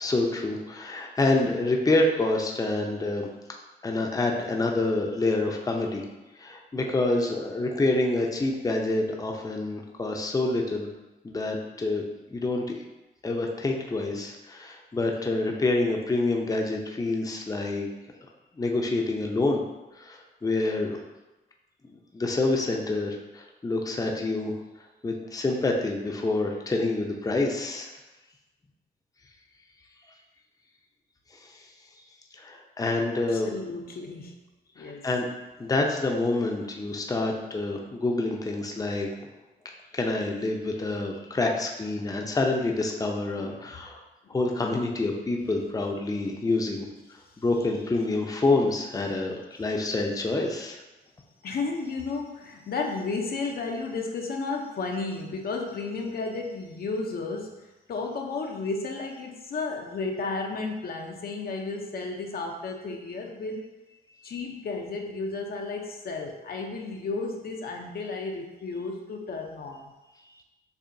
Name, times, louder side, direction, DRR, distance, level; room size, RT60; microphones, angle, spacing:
voice 1, 0.0-3.3 3.8-6.0 6.4-10.9 11.2-12.0 12.3-12.7 13.2-17.9 18.6-19.6 19.9-21.0 22.1-24.5 25.0-27.9 31.4-31.5 32.3-33.5 34.8-35.3 35.6-39.3 39.9-44.0 44.3-46.9 47.4-50.8, left 2 dB, 20° left, 1 dB, 0.6 m, -27 dB
voice 2, 33.3-34.4 34.8-35.1 43.4-43.6 44.2-44.4 47.3-47.4 51.4-63.7 64.2-69.8, left 3 dB, 60° left, 1 dB, 0.6 m, -33 dB
6.7 x 2.7 x 2.7 m, 1.1 s
cardioid pair, 85°, 18 cm